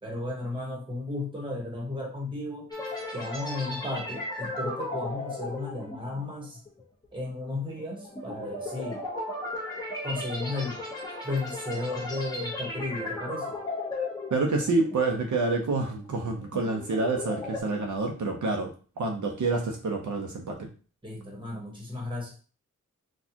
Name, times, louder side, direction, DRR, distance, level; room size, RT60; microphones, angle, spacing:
voice 1, 0.0-2.7 3.1-6.6 7.1-9.0 10.0-10.8 11.2-13.6 21.0-22.4, left 2 dB, 15° right, -1 dB, 1.2 m, -34 dB
sound 1, 2.7-15.2 15.5-15.8 16.3-17.6, left 2 dB, 10° left, 1.1 m, -36 dB
voice 2, 14.3-18.7 19.0-20.7, right 3 dB, 70° right, 1 dB, 0.7 m, -28 dB
4.2 x 2.4 x 2.8 m, 0.37 s
wide cardioid pair, 140°, 32 cm